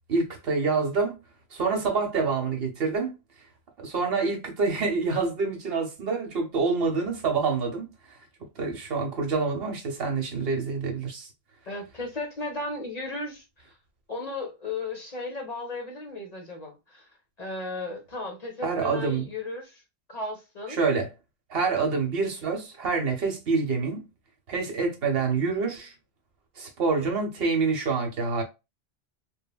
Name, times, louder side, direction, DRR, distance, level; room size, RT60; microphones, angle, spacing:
voice 1, 0.1-1.2 1.5-3.2 3.8-7.9 8.6-11.3 18.6-19.3 20.7-21.1 21.5-24.1 24.5-25.9 26.6-28.4, right 4 dB, 65° right, 1.1 m, -27 dB
voice 2, 11.7-13.8 14.1-17.1 17.4-19.8 20.1-20.8 21.7-21.8, left 2 dB, 45° left, 0.7 m, -35 dB
3.2 x 2.2 x 2.3 m
omnidirectional pair, 1.1 m